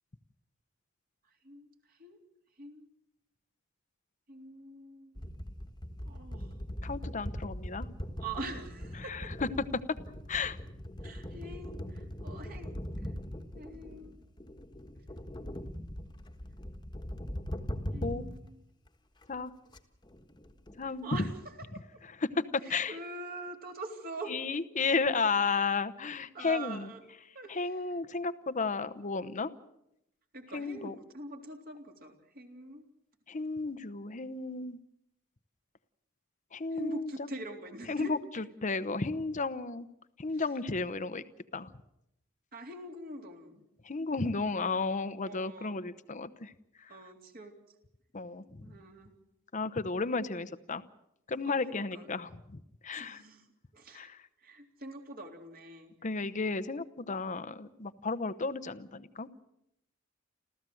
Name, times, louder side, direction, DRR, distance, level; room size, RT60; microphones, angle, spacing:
voice 1, 1.4-2.2 2.6-2.9 4.3-5.3 6.0-6.5 8.2-9.3 11.0-13.1 13.5-14.1 17.9-18.6 20.8-22.0 22.6-24.4 26.3-27.0 27.3-28.0 30.3-32.8 36.7-38.1 40.3-40.4 42.5-43.6 45.2-45.8 46.9-47.5 48.6-49.1 51.4-52.1 52.9-53.5 53.7-54.1 54.4-55.9, right 2 dB, 50° right, 3 dB, 3.5 m, -44 dB
sound 1, 5.2-18.4 18.9-19.0 19.2-19.4 19.7-19.8 20.0-21.4, equal, 20° left, 1.5 m, -41 dB
voice 2, 6.8-7.9 9.0-9.3 10.3-10.6 18.0-18.3 19.3-19.5 20.8-21.1 22.2-22.9 24.3-26.9 27.5-29.5 30.5-30.9 33.3-34.8 36.5-37.3 37.9-38.2 38.6-39.9 40.2-41.2 41.5-41.7 43.8-46.5 46.8-46.9 48.1-48.4 49.5-50.8 51.3-52.3 52.8-53.2 53.9-54.2 56.0-59.3, left 4 dB, 40° left, 12 dB, 0.9 m, -33 dB
29.5 x 14.0 x 7.8 m, 0.81 s
head